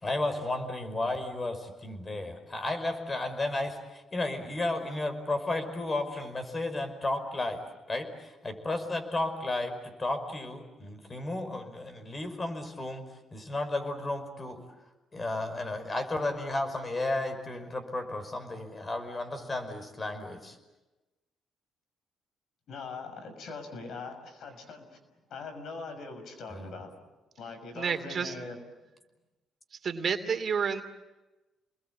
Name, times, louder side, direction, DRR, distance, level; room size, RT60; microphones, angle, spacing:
voice 1, 0.0-7.6 7.9-13.0 13.3-14.6 15.1-20.6 26.5-26.7, left 2 dB, 30° left, 8 dB, 5.4 m, -33 dB
voice 2, 22.7-24.9 25.3-26.9 27.4-28.6, left 4 dB, 70° left, 8 dB, 6.3 m, -41 dB
voice 3, 27.7-28.3 29.8-30.8, right 6 dB, 50° right, 7 dB, 2.8 m, -29 dB
30.0 x 21.5 x 8.6 m, 1.1 s
cardioid pair, 90°, 0 cm